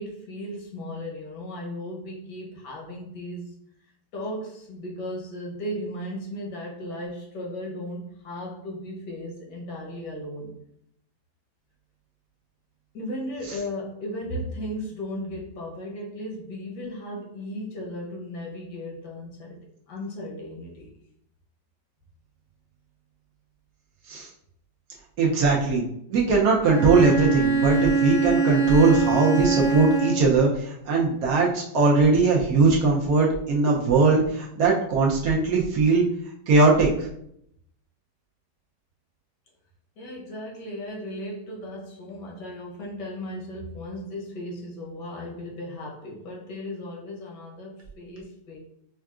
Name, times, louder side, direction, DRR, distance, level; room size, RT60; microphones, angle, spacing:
voice 1, 0.0-3.5 4.1-10.6 12.9-20.9 40.0-48.6, left 1 dB, 75° left, -2 dB, 1.5 m, -36 dB
voice 2, 25.2-36.1 36.5-37.1, right 4 dB, 65° right, -3 dB, 1.0 m, -20 dB
Bowed string instrument, 26.6-30.4, right 4 dB, 55° left, 0.8 m, -23 dB
5.3 x 2.4 x 2.3 m, 0.73 s
omnidirectional pair, 1.9 m